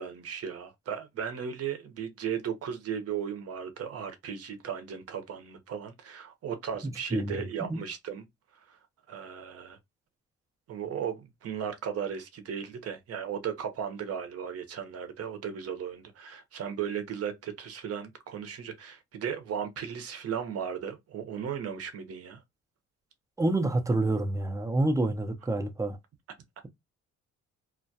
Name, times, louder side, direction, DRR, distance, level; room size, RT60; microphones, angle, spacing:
voice 1, 0.0-8.2 8.5-8.8 9.1-9.8 10.7-22.4, right 8 dB, 55° right, 0.7 m, -36 dB
voice 2, 23.4-26.0, right 2 dB, 10° right, 0.4 m, -27 dB
2.2 x 2.1 x 2.6 m
cardioid pair, 90°, 30 cm